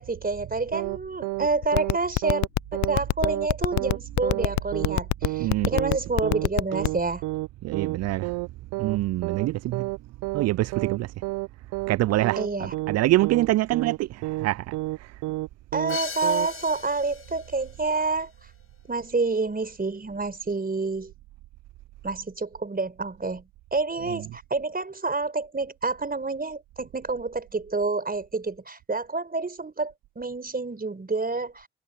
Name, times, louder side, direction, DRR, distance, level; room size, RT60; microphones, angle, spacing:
voice 1, 0.0-2.4 2.7-7.2 12.4-12.7 15.7-18.3 18.9-21.1 22.0-23.4 23.7-31.7, right 3 dB, 30° right, 4.7 m, -28 dB
sound 1, 0.7-1.5 1.7-2.0 2.2-2.5 2.7-3.0 3.2-3.5 3.7-4.0 4.2-4.5 4.7-5.0 5.2-5.5 5.7-6.0 6.2-6.5 6.7-7.0 7.2-7.5 7.7-8.5 8.7-9.0 9.2-9.5 9.7-10.0 10.2-10.5 10.7-11.0 11.2-11.5 11.7-12.0 12.2-12.5 12.7-13.0 13.2-13.5 13.7-14.0 14.2-14.5 14.7-15.0 15.2-15.5 15.7-16.0 16.2-16.5, right 20 dB, 80° right, 1.0 m, -30 dB
sound 2, 1.6-7.0, left 18 dB, 65° left, 0.6 m, -22 dB
voice 2, 5.4-5.7 7.6-8.3 8.8-9.9 10.3-11.1 11.9-14.7 15.0-15.1 24.0-24.3, right 17 dB, 55° right, 0.4 m, -25 dB
Crash cymbal, 15.9-17.7, left 6 dB, 45° left, 4.7 m, -38 dB
hypercardioid pair, 45°, 31 cm